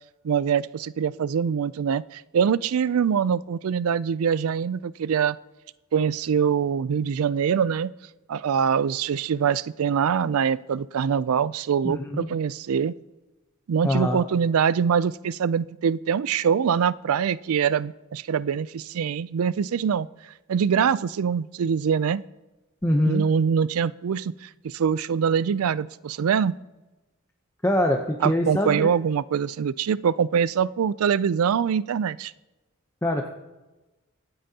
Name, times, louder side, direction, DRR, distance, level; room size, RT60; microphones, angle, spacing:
voice 1, 0.2-5.4 5.9-7.9 8.3-12.9 13.7-20.1 20.5-22.2 23.1-26.6 28.2-32.3, right 7 dB, 85° right, 19 dB, 0.4 m, -24 dB
voice 2, 11.8-12.3 13.8-14.2 22.8-23.3 27.6-28.9 33.0-33.3, left 1 dB, 10° left, 2 dB, 0.7 m, -24 dB
25.0 x 8.7 x 2.8 m, 1.1 s
head